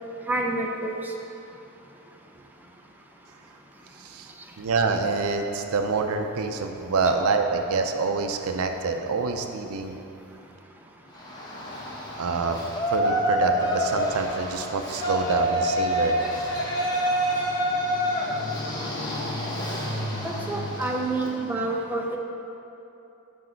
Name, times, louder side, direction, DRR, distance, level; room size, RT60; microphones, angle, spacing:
voice 1, 0.3-0.9 20.2-22.2, right 2 dB, 10° right, 0 dB, 0.5 m, -28 dB
voice 2, 4.0-4.3 4.6-10.0 12.2-12.6 12.9-16.2, right 4 dB, 75° right, 5 dB, 0.5 m, -26 dB
Yell, 11.1-21.4, equal, 20° left, 0.9 m, -27 dB
6.2 x 5.9 x 4.4 m, 2.8 s
head